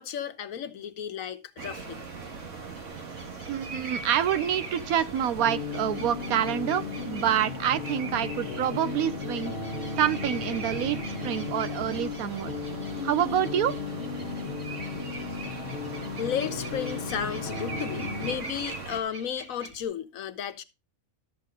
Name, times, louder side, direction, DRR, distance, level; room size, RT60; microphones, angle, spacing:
voice 1, 0.0-2.0 16.2-20.6, left 8 dB, 70° left, 1.3 m, -33 dB
sound 1, 1.6-19.0, right 4 dB, 60° right, 1.9 m, -39 dB
sound 2, 2.7-19.8, right 3 dB, 35° right, 2.1 m, -48 dB
voice 2, 3.5-9.5 10.0-12.5 13.0-13.8, right 10 dB, 85° right, 1.2 m, -27 dB
sound 3, 5.3-18.4, left 5 dB, 45° left, 1.1 m, -35 dB
12.5 x 7.0 x 3.7 m
omnidirectional pair, 1.5 m